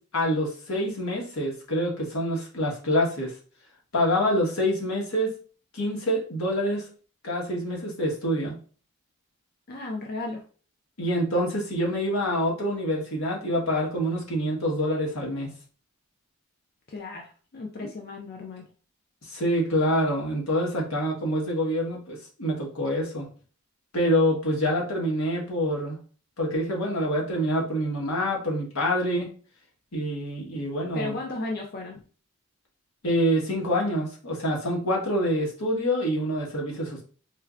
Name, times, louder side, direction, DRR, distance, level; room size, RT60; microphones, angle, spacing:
voice 1, 0.1-3.3 3.9-5.3 5.7-6.9 7.2-8.6 11.0-15.5 19.3-23.3 23.9-26.0 26.4-29.3 29.9-31.1 33.0-37.0, equal, 80° left, -2 dB, 1.2 m, -26 dB
voice 2, 9.7-10.4 16.9-18.7 30.9-32.0, left 2 dB, 45° left, 0 dB, 0.5 m, -34 dB
4.4 x 2.2 x 2.4 m, 0.39 s
head